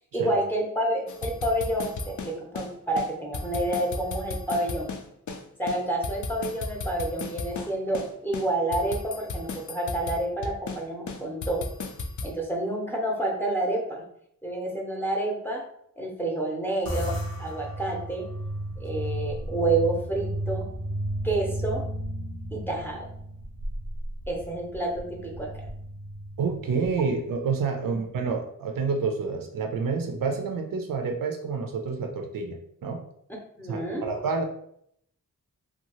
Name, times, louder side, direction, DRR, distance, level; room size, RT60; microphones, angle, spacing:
voice 1, 0.1-4.9 5.6-11.6 12.2-14.0 14.4-15.6 16.0-18.3 18.8-20.7 21.2-21.8 22.5-23.1 24.3-25.5 27.8-27.9 33.6-34.1, right 1 dB, 5° left, -1 dB, 0.6 m, -29 dB
sound 1, 1.1-2.7 3.0-3.1 3.3-5.4 5.7-7.7 7.9-8.1 8.3-10.8 11.1-12.3, left 3 dB, 60° left, 0.4 m, -34 dB
sound 2, 16.9-27.5, right 1 dB, 90° left, 0.8 m, -34 dB
voice 2, 26.4-33.0 33.7-34.4, right 4 dB, 75° right, 3 dB, 0.5 m, -28 dB
2.7 x 2.3 x 2.9 m, 0.70 s
wide cardioid pair, 95°, 34 cm